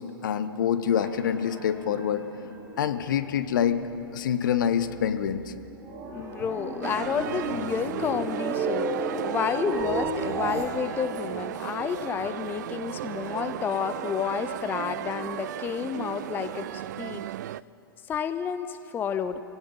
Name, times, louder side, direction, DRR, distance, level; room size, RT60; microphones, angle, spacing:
voice 1, 0.0-2.2 2.8-3.8 4.1-5.5, left 9 dB, 60° left, 11 dB, 1.0 m, -26 dB
sound 1, 1.0-3.7 4.0-10.6, right 3 dB, 25° right, 3.3 m, -34 dB
voice 2, 6.1-8.9 9.2-17.2 18.1-19.4, left 7 dB, 15° left, 11 dB, 0.6 m, -30 dB
sound 2, 6.8-17.6, right 13 dB, 50° right, 0.3 m, -35 dB
27.0 x 17.0 x 5.6 m, 2.9 s
figure-of-eight pair, 110°, 12 cm